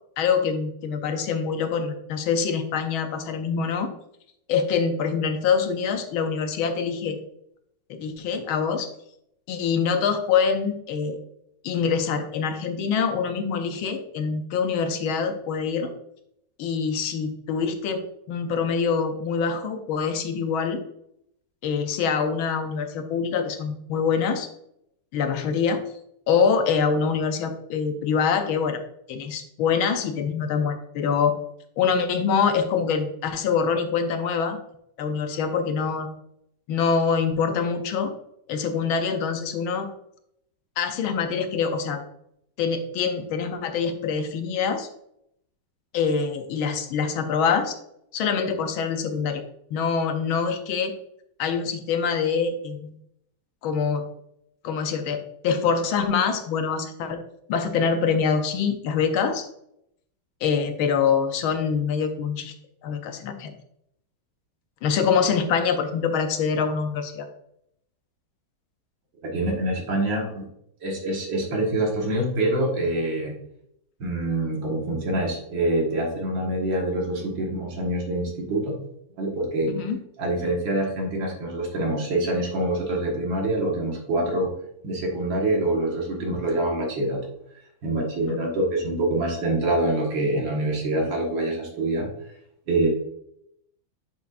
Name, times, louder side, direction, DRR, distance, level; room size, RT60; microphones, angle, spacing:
voice 1, 0.2-3.9 4.5-7.2 7.9-8.9 9.5-11.2 11.6-15.9 16.6-20.8 21.6-24.5 25.1-25.8 26.3-28.8 29.1-31.4 31.8-34.6 35.0-36.1 36.7-38.1 38.5-39.9 40.8-42.0 42.6-44.9 45.9-47.8 48.1-49.4 49.7-50.9 51.4-53.0 53.6-54.1 54.6-57.2 57.5-59.5 60.4-62.5 62.8-63.5 64.8-67.3 79.7-80.0 88.3-88.4, left 6 dB, 75° left, 7 dB, 1.5 m, -25 dB
voice 2, 69.2-70.4 70.8-73.4 74.0-78.7 79.2-79.8 80.2-84.5 84.8-87.2 87.8-92.1 92.7-92.9, right 1 dB, 60° right, -1 dB, 2.1 m, -25 dB
7.0 x 6.1 x 2.5 m, 0.74 s
omnidirectional pair, 2.3 m